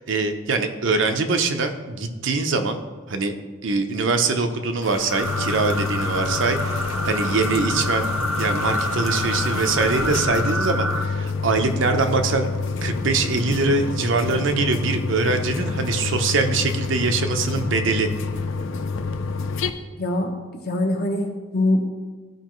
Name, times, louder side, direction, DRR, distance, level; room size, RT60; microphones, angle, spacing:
voice 1, 0.0-2.8 3.1-3.3 3.6-8.1 8.4-12.5 12.8-18.1, right 3 dB, 65° right, 6 dB, 0.6 m, -23 dB
Rain, 4.8-10.2, left 3 dB, 85° left, 0.8 m, -37 dB
sound 1, 5.1-11.0, equal, ahead, 0.4 m, -28 dB
sound 2, 5.2-19.7, left 4 dB, 70° left, 0.5 m, -28 dB
voice 2, 20.0-20.3 20.6-21.8, left 1 dB, 50° left, 2 dB, 1.0 m, -23 dB
13.5 x 4.7 x 3.1 m, 1.4 s
head